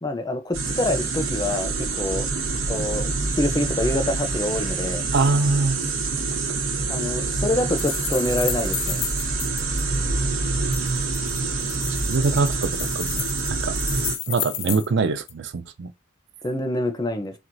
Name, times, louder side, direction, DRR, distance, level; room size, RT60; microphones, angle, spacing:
voice 1, 0.0-2.3 2.7-5.0 6.9-9.0 16.4-17.3, left 1 dB, 20° left, 0.5 m, -26 dB
sound 1, 0.5-14.2, right 3 dB, 85° right, 1.3 m, -26 dB
voice 2, 5.1-5.8 12.0-13.8 14.3-15.9, right 3 dB, 55° right, 0.5 m, -23 dB
sound 2, 7.8-9.8 10.7-14.9 15.3-15.4, left 12 dB, 80° left, 0.6 m, -32 dB
4.5 x 3.9 x 2.6 m
head